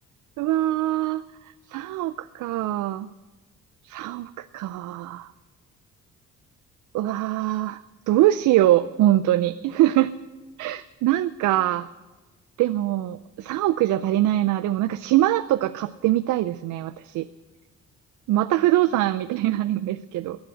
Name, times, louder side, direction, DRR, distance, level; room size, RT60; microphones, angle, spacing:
voice 1, 0.4-1.2 1.7-3.1 3.8-5.3 6.9-7.8 8.1-10.1 10.6-11.9 12.6-17.3 18.3-20.4, right 14 dB, 80° right, 12 dB, 0.5 m, -23 dB
17.5 x 10.5 x 7.8 m, 1.2 s
cardioid pair, 90°, 30 cm